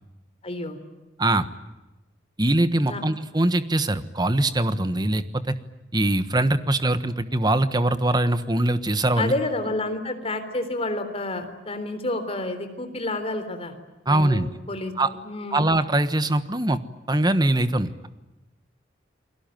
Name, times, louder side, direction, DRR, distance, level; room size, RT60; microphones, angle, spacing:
voice 1, 0.4-0.8 2.8-3.0 9.2-13.7 14.1-15.6, left 2 dB, 30° left, 8 dB, 3.6 m, -29 dB
voice 2, 2.4-5.5 5.9-9.3 14.1-14.5 15.0-15.1 15.5-16.8 17.1-18.1, right 1 dB, 20° right, 12 dB, 1.3 m, -22 dB
29.5 x 22.0 x 9.2 m, 1.0 s
head